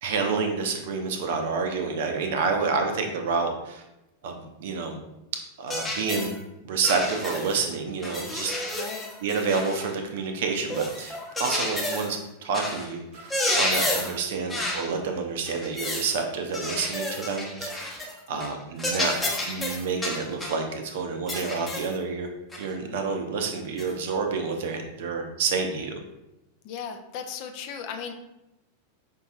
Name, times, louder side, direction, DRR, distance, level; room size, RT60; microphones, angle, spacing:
voice 1, 0.0-3.8 4.2-5.0 5.6-6.3 6.6-8.5 9.2-18.0 18.3-19.1 19.5-22.3 22.6-26.0, right 4 dB, 55° right, 4 dB, 0.6 m, -29 dB
sound 1, 5.7-6.3 6.8-7.6 8.0-9.9 10.7-12.2 12.5-12.9 13.2-14.2 14.5-14.9 15.5-16.1 16.5-18.1 18.4-18.5 18.8-20.6 21.3-21.9 22.5-22.7 23.8-23.9, left 1 dB, 10° left, 0.8 m, -30 dB
voice 2, 8.7-9.1 18.3-18.6 26.6-28.1, left 7 dB, 45° left, 6 dB, 0.4 m, -37 dB
5.2 x 2.7 x 2.4 m, 0.92 s
figure-of-eight pair, 90°, 0 cm